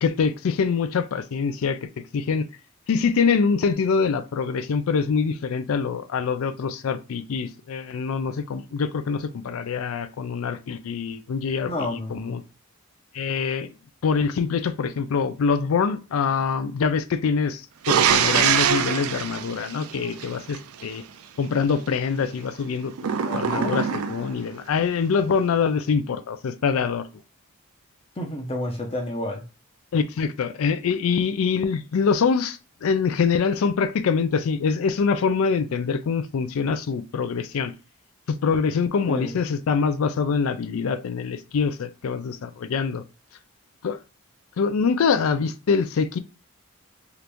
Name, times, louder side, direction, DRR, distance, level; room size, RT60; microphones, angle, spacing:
voice 1, 0.0-2.5 2.9-12.4 13.1-13.7 14.0-17.6 17.9-21.0 21.4-27.1 29.9-37.7 38.3-43.0 43.8-44.0 44.6-46.2, left 5 dB, 70° left, 0.4 m, -24 dB
voice 2, 11.6-12.3 23.2-23.7 28.2-29.4 39.1-39.3, left 1 dB, 25° left, 0.7 m, -30 dB
sound 1, 17.8-20.6 23.0-24.4, right 8 dB, 85° right, 0.4 m, -23 dB
2.9 x 2.5 x 3.4 m
head